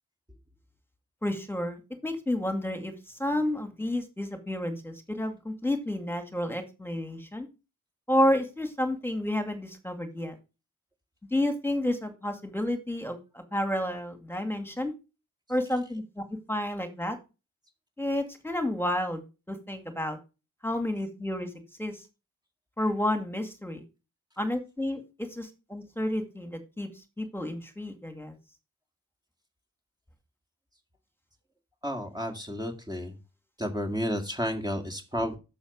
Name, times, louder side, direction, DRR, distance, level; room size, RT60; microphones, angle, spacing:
voice 1, 1.2-2.9 3.2-7.5 8.1-10.4 11.3-14.9 15.5-17.2 18.0-20.2 20.6-21.5 21.8-22.0 22.8-23.8 24.4-25.0 25.3-26.9 27.2-28.3, left 1 dB, 5° left, 6 dB, 2.3 m, -30 dB
voice 2, 31.8-33.1 33.6-35.4, equal, 10° right, 3 dB, 2.1 m, -31 dB
7.0 x 6.9 x 5.3 m, 0.29 s
cardioid pair, 45°, 33 cm